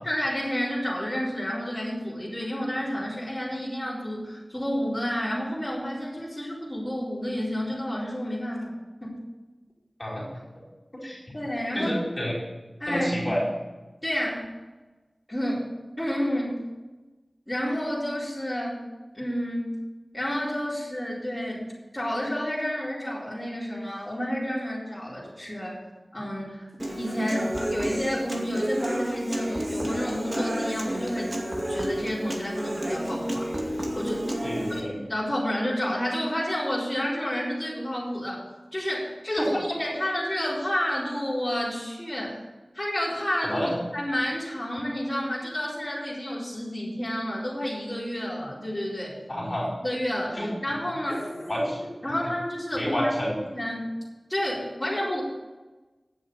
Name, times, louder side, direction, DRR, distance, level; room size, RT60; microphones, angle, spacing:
voice 1, 0.0-8.8 9.0-9.2 11.3-12.0 12.8-13.3 14.0-14.5 15.3-15.7 16.0-16.6 17.5-18.8 19.1-19.8 20.1-21.7 21.9-25.8 26.1-26.7 26.9-31.3 31.7-34.3 34.8-38.4 38.7-42.4 42.7-43.6 43.9-49.1 49.8-51.6 52.0-53.1 53.5-53.9 54.3-55.2, equal, 15° left, -9 dB, 4.3 m, -30 dB
voice 2, 10.0-10.4 11.0-11.2 11.7-12.4 12.8-13.4 34.4-34.9 39.4-39.6 43.4-43.8 49.3-49.7 50.3-50.5 51.5-51.8 52.7-53.4, equal, 30° left, -5 dB, 4.9 m, -28 dB
Human voice / Acoustic guitar, 26.8-34.8, equal, 30° right, 2.3 m, -31 dB
9.3 x 7.5 x 8.7 m, 1.2 s
wide cardioid pair, 55°, 0 cm